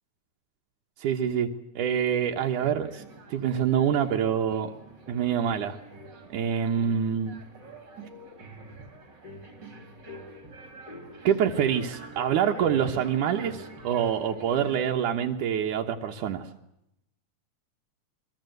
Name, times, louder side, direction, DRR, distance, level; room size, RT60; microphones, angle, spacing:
voice 1, 1.0-1.5 1.8-3.0 3.3-4.7 5.1-5.8 6.3-7.4 11.2-16.5, right 8 dB, 85° right, 2 dB, 2.9 m, -26 dB
sound 1, 2.4-15.1, right 1 dB, 35° right, 3.7 m, -46 dB
28.5 x 22.5 x 8.0 m, 0.82 s
omnidirectional pair, 3.5 m